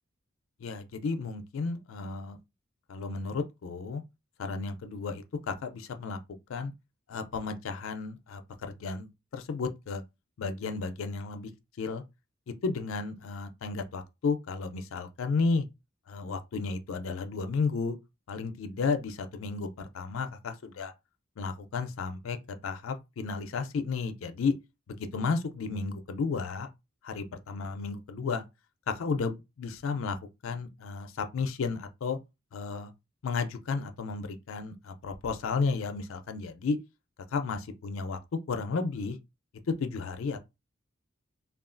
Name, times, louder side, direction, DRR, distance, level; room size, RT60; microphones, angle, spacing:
voice 1, 0.6-2.4 2.9-4.0 4.4-6.2 6.5-6.7 7.1-10.0 10.4-11.5 11.8-12.0 12.5-15.7 16.1-18.0 18.3-20.9 21.4-22.4 22.6-24.5 24.9-26.7 27.0-28.4 28.9-30.2 30.4-32.2 32.5-32.9 33.2-36.8 37.3-38.2 38.5-39.2 39.7-40.4, left 4 dB, 75° left, 0.4 m, -33 dB
3.0 x 2.3 x 2.4 m
head